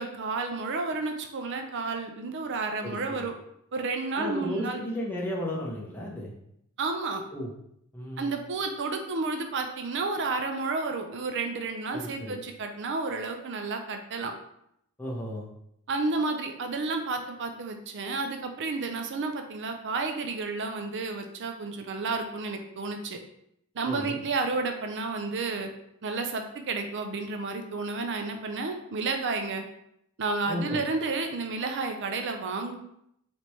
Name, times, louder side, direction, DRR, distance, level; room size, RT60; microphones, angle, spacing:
voice 1, 0.0-3.3 3.7-4.8 6.8-7.2 8.2-14.3 15.9-23.2 23.7-25.7 26.0-29.6 30.2-32.7, right 3 dB, 55° right, 5 dB, 0.5 m, -31 dB
voice 2, 2.8-3.3 4.1-6.3 7.3-7.5 7.9-8.3 11.9-12.4 15.0-15.5 23.9-24.2 30.5-30.8, left 1 dB, 10° left, -4 dB, 0.8 m, -34 dB
4.2 x 3.2 x 3.1 m, 0.75 s
head